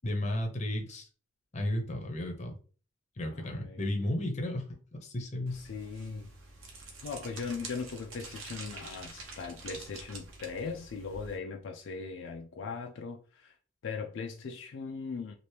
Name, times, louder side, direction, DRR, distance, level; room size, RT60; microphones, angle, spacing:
voice 1, 0.0-1.1 1.5-2.6 3.2-4.7 5.0-5.6, left 1 dB, 35° left, 0.7 m, -33 dB
voice 2, 3.2-3.8 5.5-6.3 7.0-13.5 13.8-15.3, left 5 dB, 70° left, 0.4 m, -39 dB
sound 1, 5.5-11.4, right 3 dB, 80° right, 0.9 m, -47 dB
2.8 x 2.5 x 3.2 m
head